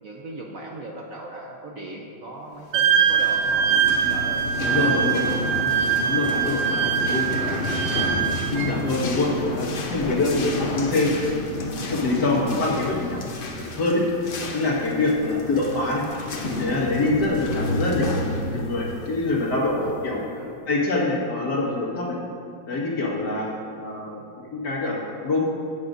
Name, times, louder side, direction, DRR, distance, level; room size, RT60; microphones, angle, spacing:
voice 1, 0.0-3.7 4.1-5.0 5.4-5.9 6.3-7.6 8.0-8.3 9.9-10.2 11.8-12.0 13.9-14.1 14.8-15.0 17.4-17.6 19.7-20.6 23.3-23.5, right 2 dB, 55° right, -1 dB, 1.1 m, -40 dB
Wind instrument woodwind instrument, 2.7-8.7, right 8 dB, 85° right, 1.4 m, -23 dB
sound 1, 2.8-20.2, left 2 dB, 75° left, 0.5 m, -31 dB
voice 2, 4.6-5.2 6.0-7.4 8.5-11.2 11.5-13.2 13.6-14.0 14.5-16.0 16.5-20.2 20.7-22.1 22.7-23.5 23.8-25.4, left 2 dB, 60° left, -3 dB, 2.2 m, -25 dB
17.0 x 7.9 x 2.6 m, 2.6 s
omnidirectional pair, 2.1 m